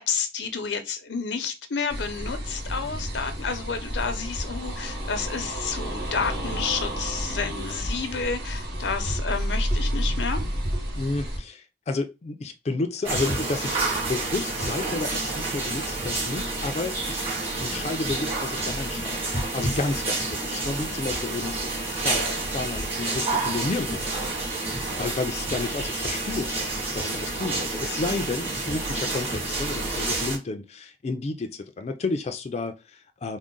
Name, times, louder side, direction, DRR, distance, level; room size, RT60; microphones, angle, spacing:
voice 1, 0.0-10.4, left 5 dB, 85° left, 0.6 m, -30 dB
sound 1, 1.9-11.4, equal, 70° right, 1.4 m, -30 dB
voice 2, 10.9-17.2 17.6-21.7 22.0-24.3 24.6-33.4, left 3 dB, 40° left, 0.4 m, -31 dB
sound 2, 13.0-30.4, right 2 dB, 35° right, 1.5 m, -29 dB
3.6 x 2.1 x 3.7 m
head